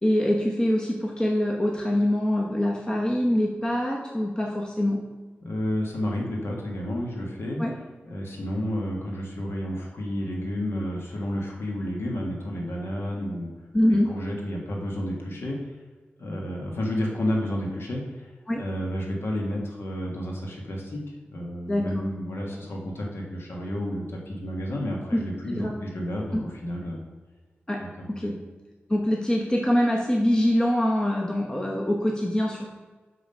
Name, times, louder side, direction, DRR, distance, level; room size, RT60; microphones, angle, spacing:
voice 1, 0.0-5.1 7.6-7.7 13.7-14.1 18.5-18.6 21.7-22.0 25.1-25.3 25.5-25.7 27.7-28.4 28.9-32.7, left 1 dB, 20° left, -1 dB, 0.9 m, -24 dB
voice 2, 5.4-7.6 8.0-13.5 13.9-15.8 16.2-27.0 27.8-27.9 28.2-28.4, equal, 75° left, -1 dB, 1.5 m, -31 dB
6.1 x 5.5 x 5.5 m, 1.3 s
wide cardioid pair, 85°, 4 cm